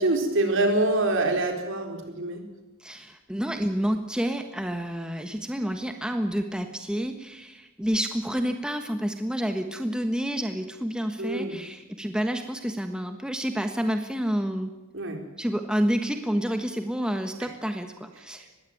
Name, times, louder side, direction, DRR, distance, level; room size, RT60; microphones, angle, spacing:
voice 1, 0.0-2.4 11.2-11.6 14.9-15.2, right 2 dB, 65° right, 4 dB, 4.2 m, -25 dB
voice 2, 2.8-14.7 15.4-18.4, equal, 5° right, 6 dB, 1.3 m, -29 dB
21.0 x 16.0 x 9.3 m, 1.1 s
head